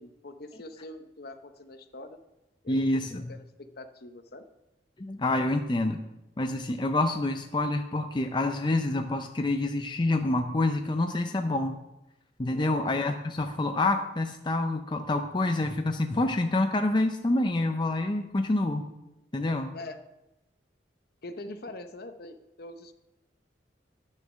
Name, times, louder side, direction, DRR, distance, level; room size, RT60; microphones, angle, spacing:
voice 1, 0.0-2.2 2.6-4.4 12.5-12.9 19.7-20.0 21.2-22.9, left 2 dB, 55° left, 8 dB, 0.8 m, -44 dB
voice 2, 2.7-3.3 5.0-6.0 6.4-11.8 12.4-18.9 19.3-19.7, left 2 dB, 25° left, 5 dB, 0.5 m, -27 dB
11.0 x 6.5 x 6.2 m, 0.94 s
head